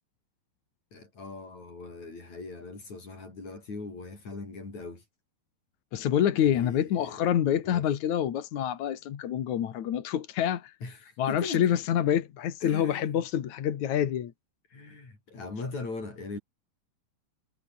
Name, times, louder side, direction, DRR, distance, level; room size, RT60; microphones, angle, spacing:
voice 1, 0.9-5.0 6.4-7.2 7.6-7.9 10.8-11.6 12.6-13.2 14.7-16.4, left 3 dB, 40° left, 9.2 m, -40 dB
voice 2, 5.9-10.7 11.2-14.3, left 10 dB, 55° left, 2.4 m, -27 dB
omnidirectional pair, 5.0 m